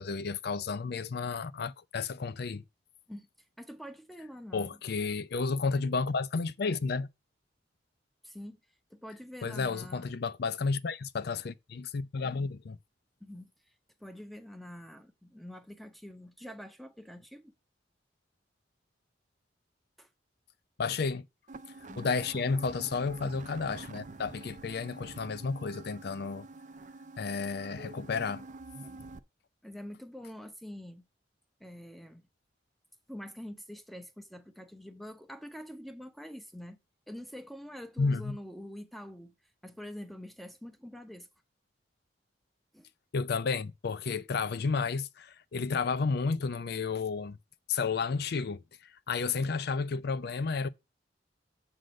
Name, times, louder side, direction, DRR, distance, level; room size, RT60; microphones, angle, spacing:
voice 1, 0.0-2.6 4.5-7.1 9.4-12.8 20.8-21.2 22.0-26.5 27.2-28.4 38.0-38.4 43.1-47.4 47.7-48.6 49.1-50.7, left 4 dB, 60° left, 0.5 m, -32 dB
voice 2, 3.6-4.8 8.2-8.6 8.9-10.1 13.2-13.5 14.0-17.5 20.0-20.1 21.9-22.1 29.6-31.1 31.6-32.3 33.1-36.8 37.1-39.3 39.6-41.3 42.7-42.9, equal, ahead, 0.8 m, -45 dB
sound 1, 21.5-29.2, right 3 dB, 45° right, 0.5 m, -47 dB
7.8 x 3.8 x 6.3 m
head